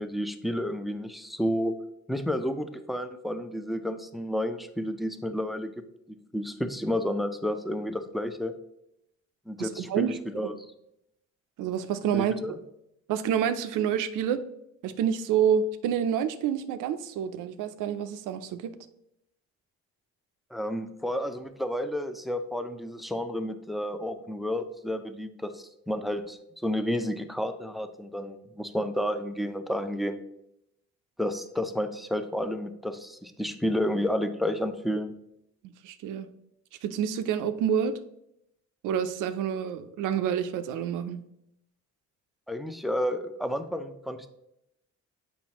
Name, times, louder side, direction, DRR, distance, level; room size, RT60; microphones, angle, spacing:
voice 1, 0.0-1.8 2.1-5.7 6.3-8.5 9.5-10.5 12.1-12.6 20.5-30.2 31.2-35.1 42.5-44.3, equal, ahead, 8 dB, 0.5 m, -31 dB
voice 2, 9.6-10.2 11.6-12.3 13.1-14.4 14.8-18.7 35.8-36.3 36.8-37.9 38.8-41.2, right 8 dB, 90° right, 10 dB, 0.5 m, -28 dB
7.2 x 5.3 x 2.9 m, 0.81 s
cardioid pair, 90°, 30 cm